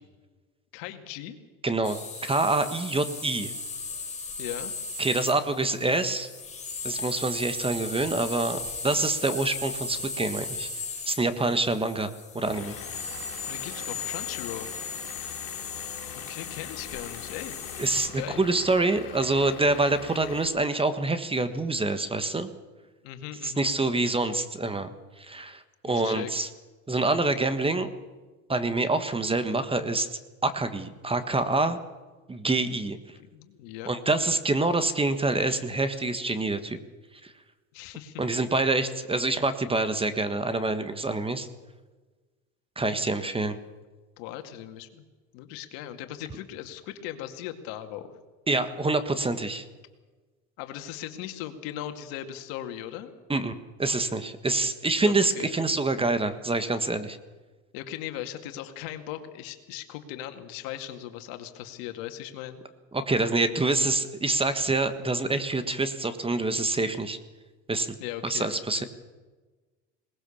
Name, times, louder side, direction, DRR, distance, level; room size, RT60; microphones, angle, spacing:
voice 1, 0.7-1.4 4.4-4.7 13.4-14.7 15.9-16.0 16.3-17.6 18.1-18.4 23.0-23.7 25.9-26.3 33.3-33.9 37.7-38.2 44.2-45.0 45.3-48.2 50.6-53.1 55.1-55.5 57.7-62.6 68.0-68.9, left 12 dB, 70° left, 7 dB, 2.3 m, -38 dB
voice 2, 1.6-2.0 2.2-3.5 5.0-6.3 6.8-10.7 11.1-12.1 12.3-12.8 17.8-22.5 23.4-26.5 26.9-27.9 28.5-30.1 30.4-31.8 32.3-33.0 33.8-36.8 37.2-37.3 38.2-41.5 42.8-43.6 48.5-49.6 53.3-53.5 53.8-57.2 62.9-67.2 67.7-67.9 68.2-68.8, right 2 dB, 15° right, 11 dB, 1.5 m, -26 dB
sound 1, 1.8-18.1, left 3 dB, 20° left, 4.1 m, -37 dB
Vehicle / Engine, 12.5-20.5, left 11 dB, 90° left, 2.6 m, -43 dB
21.0 x 19.0 x 7.2 m, 1.3 s
supercardioid pair, 105°, 37 cm